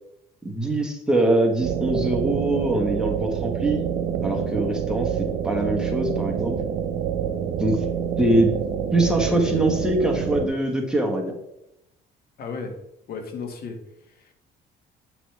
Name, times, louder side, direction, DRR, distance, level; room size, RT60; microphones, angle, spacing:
voice 1, 0.4-3.9 4.2-6.6 7.6-7.8 8.2-8.5 8.9-11.3, right 1 dB, 5° right, 0 dB, 1.7 m, -23 dB
sound 1, 1.6-10.5, right 8 dB, 90° right, 0.9 m, -27 dB
voice 2, 12.4-12.8 13.1-14.3, left 4 dB, 65° left, 4 dB, 1.8 m, -35 dB
9.8 x 6.1 x 3.5 m, 0.84 s
cardioid pair, 110°, 17 cm